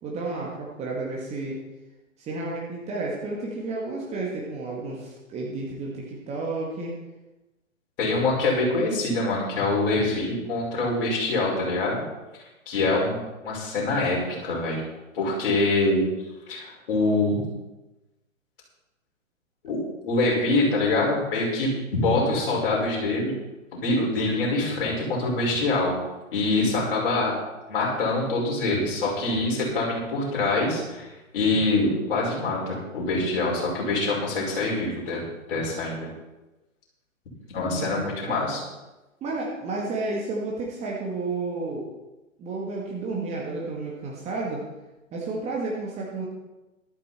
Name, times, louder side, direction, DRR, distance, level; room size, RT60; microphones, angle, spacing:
voice 1, 0.0-1.6 2.2-6.9 37.7-38.0 38.2-38.6 39.2-41.9 42.4-44.7 45.1-46.3, right 3 dB, 15° right, -3 dB, 1.9 m, -31 dB
voice 2, 8.0-12.0 12.7-13.2 13.4-14.8 15.1-16.0 16.5-17.4 19.6-19.8 20.0-23.3 23.7-26.0 26.3-27.3 27.7-31.1 31.3-35.2 35.5-36.1 37.5-38.6, left 2 dB, 40° left, -3 dB, 5.9 m, -24 dB
14.0 x 13.0 x 4.5 m, 1.0 s
figure-of-eight pair, 120°, 41 cm